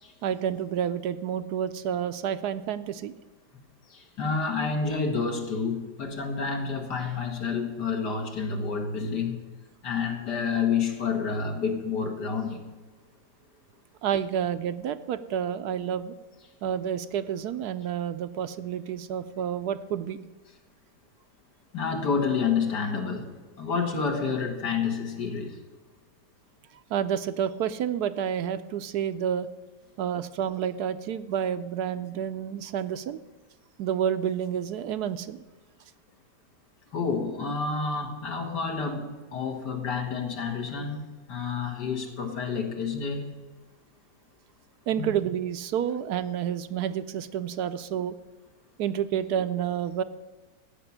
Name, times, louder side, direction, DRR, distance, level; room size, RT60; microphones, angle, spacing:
voice 1, 0.2-3.1 14.0-16.1 16.6-20.2 26.9-29.5 30.0-33.2 33.8-35.4 44.9-48.1 48.8-50.0, right 9 dB, 75° right, 12 dB, 1.1 m, -29 dB
voice 2, 3.9-9.4 9.8-12.7 21.7-23.3 23.6-25.6 36.9-41.0 41.3-43.4 45.0-45.1, left 5 dB, 75° left, 3 dB, 2.4 m, -29 dB
15.0 x 6.0 x 10.0 m, 1.2 s
omnidirectional pair, 1.8 m